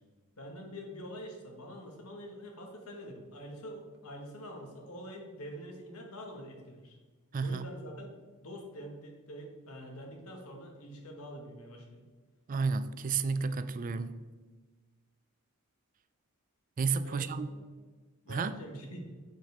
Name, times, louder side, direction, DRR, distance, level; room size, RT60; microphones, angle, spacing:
voice 1, 0.4-7.0 7.4-8.1 8.4-12.1 17.0-17.7 18.2-19.1, equal, 75° left, 1.6 m, -45 dB
voice 2, 7.3-7.7 12.5-14.2 16.8-17.5 18.3-18.5, right 4 dB, 35° right, 0.4 m, -31 dB
7.7 x 7.3 x 3.5 m
head